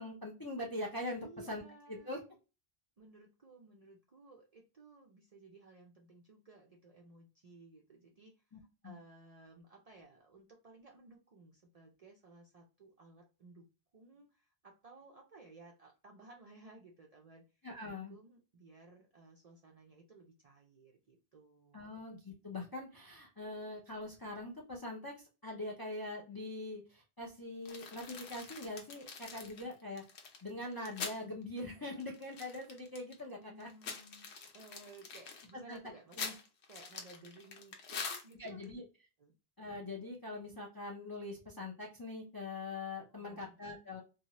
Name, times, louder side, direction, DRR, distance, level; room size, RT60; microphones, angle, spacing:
voice 1, 0.0-1.6 1.9-2.2 8.5-9.0 17.6-18.2 21.7-30.0 30.4-33.7 35.7-35.8 36.2-36.3 38.4-38.8 39.6-44.0, left 2 dB, 30° left, -2 dB, 0.4 m, -43 dB
voice 2, 1.2-2.2 3.0-8.4 8.8-13.7 13.9-17.4 17.8-21.9 33.3-34.3 34.5-36.4 36.7-38.8 39.2-39.3 43.0-43.6, right 3 dB, 50° right, 0 dB, 0.5 m, -58 dB
sound 1, 27.7-31.2 31.6-31.7 31.9-33.2 33.6-38.6, left 5 dB, 80° left, 0.9 m, -45 dB
2.7 x 2.2 x 2.8 m, 0.32 s
omnidirectional pair, 1.1 m